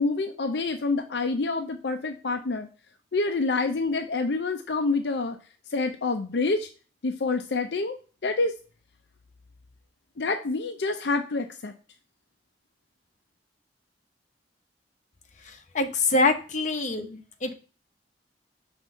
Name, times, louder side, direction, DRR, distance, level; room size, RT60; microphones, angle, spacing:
voice 1, 0.0-2.7 3.1-5.4 5.7-6.7 7.0-8.5 10.2-11.7, left 3 dB, 70° left, 6 dB, 0.6 m, -27 dB
voice 2, 15.4-17.5, left 3 dB, 45° left, 4 dB, 1.0 m, -25 dB
6.0 x 3.6 x 5.4 m, 0.36 s
head